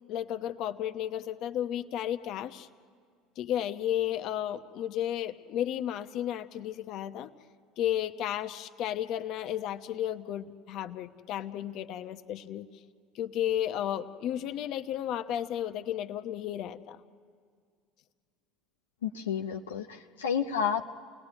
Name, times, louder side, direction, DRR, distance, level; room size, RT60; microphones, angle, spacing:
voice 1, 0.1-2.7 3.4-7.3 7.8-12.7 13.1-17.0, left 11 dB, 60° left, 9 dB, 0.9 m, -33 dB
voice 2, 19.0-20.8, left 7 dB, 90° left, 2 dB, 0.7 m, -31 dB
28.0 x 18.5 x 9.8 m, 2.1 s
hypercardioid pair, 70°, 0 cm